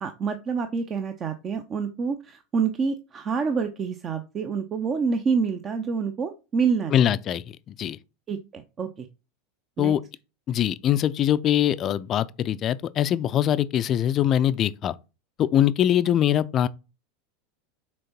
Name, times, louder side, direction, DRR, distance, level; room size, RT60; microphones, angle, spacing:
voice 1, 0.0-7.1 8.3-9.1 9.8-9.9, right 5 dB, 30° right, 0.7 m, -27 dB
voice 2, 6.9-8.0 9.8-10.0 10.5-15.0 15.4-16.7, left 10 dB, 35° left, 0.5 m, -23 dB
6.4 x 4.4 x 4.3 m
figure-of-eight pair, 80°, 0 cm